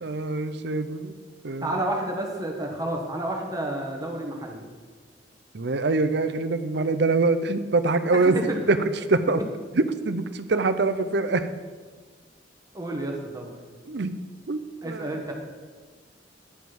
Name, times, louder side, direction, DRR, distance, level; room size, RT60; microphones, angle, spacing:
voice 1, 0.0-1.1 1.4-1.8 5.5-8.4 8.7-8.8 9.1-9.4 9.7-11.5 13.9-14.1 14.5-14.6 14.8-15.1, right 3 dB, 65° right, 11 dB, 0.6 m, -24 dB
voice 2, 1.6-4.6 8.1-8.6 12.7-13.5 14.8-15.3, right 1 dB, 20° right, 1 dB, 1.3 m, -30 dB
10.0 x 7.3 x 6.0 m, 1.5 s
head